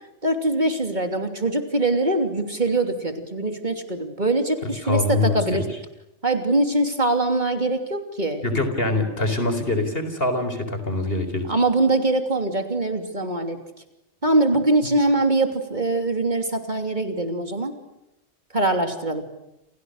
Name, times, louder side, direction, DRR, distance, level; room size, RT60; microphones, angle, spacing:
voice 1, 0.2-5.7 6.2-8.4 11.5-13.6 14.2-17.7 18.5-19.2, right 2 dB, 40° right, 6 dB, 3.2 m, -23 dB
voice 2, 4.8-5.6 8.4-11.5, left 2 dB, 50° left, 8 dB, 4.6 m, -24 dB
29.5 x 29.0 x 6.6 m, 0.88 s
omnidirectional pair, 1.2 m